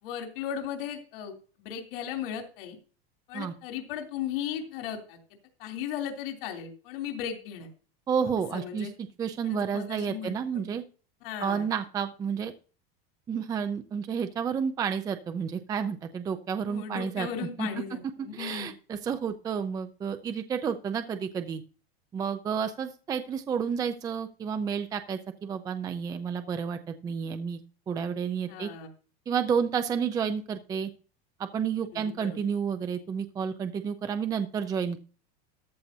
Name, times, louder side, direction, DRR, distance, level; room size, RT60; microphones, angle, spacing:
voice 1, 0.0-2.8 3.3-5.2 5.6-7.7 8.5-8.9 9.4-10.6 11.2-11.7 16.7-18.7 28.5-28.9 31.9-32.4, left 9 dB, 65° left, 3 dB, 3.2 m, -36 dB
voice 2, 8.1-8.9 9.2-10.8 11.4-12.5 13.3-17.7 18.3-21.6 22.1-27.6 27.9-28.7 29.3-30.9 31.4-35.0, right 7 dB, 10° right, 9 dB, 0.5 m, -30 dB
14.0 x 12.0 x 2.7 m, 0.37 s
supercardioid pair, 165°, 30 cm